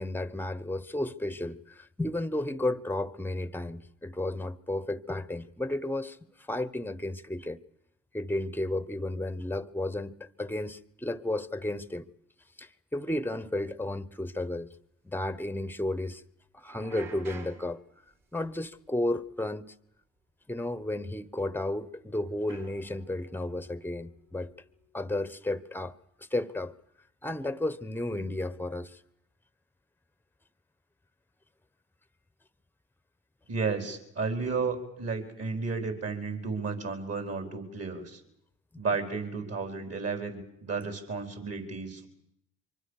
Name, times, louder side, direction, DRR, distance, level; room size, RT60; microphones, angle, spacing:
voice 1, 0.0-6.2 6.5-7.6 8.1-12.1 12.6-14.7 15.0-16.2 16.5-17.8 18.3-19.7 20.5-24.5 24.9-26.0 26.3-26.7 27.2-29.0, left 1 dB, 5° left, 1.2 m, -33 dB
sound 1, 13.2-13.3 13.8-14.0 14.3-14.4 14.7-14.8 16.6-19.7 19.9-20.2 21.2-21.3 22.5-24.9, right 4 dB, 65° right, 5.3 m, -52 dB
voice 2, 33.5-38.2 38.8-42.1, right 4 dB, 45° right, 4.6 m, -33 dB
24.5 x 24.5 x 6.6 m
hypercardioid pair, 50°, 35 cm